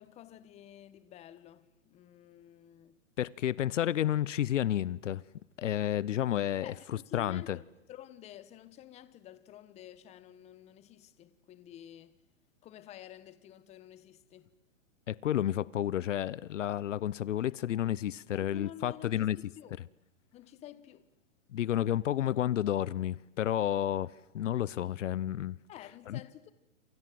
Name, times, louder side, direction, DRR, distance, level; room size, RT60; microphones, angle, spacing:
voice 1, 0.0-3.0 6.6-7.6 7.9-12.2 12.6-14.5 18.3-19.8 20.3-21.1 25.7-26.5, left 11 dB, 15° left, 1.3 m, -51 dB
voice 2, 3.2-5.2 5.6-7.6 15.1-19.4 21.5-25.6 26.1-26.2, left 11 dB, 70° left, 0.9 m, -31 dB
28.5 x 27.0 x 7.8 m
hypercardioid pair, 155°, 38 cm